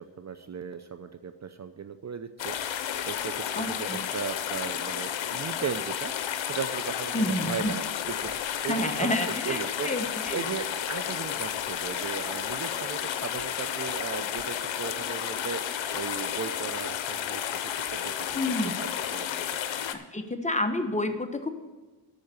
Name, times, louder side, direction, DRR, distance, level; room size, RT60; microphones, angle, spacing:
voice 1, 0.0-2.6 3.0-9.9 10.3-18.4 18.6-19.5 19.7-19.9, right 7 dB, 35° right, 10 dB, 0.6 m, -37 dB
sound 1, 2.4-20.0, left 9 dB, 75° left, 0.9 m, -32 dB
voice 2, 3.5-4.0 7.1-7.7 8.7-9.6 9.8-10.4 18.3-18.7 19.9-21.5, left 1 dB, 15° left, 6 dB, 1.1 m, -29 dB
8.8 x 6.5 x 8.0 m, 1.2 s
cardioid pair, 75°, 46 cm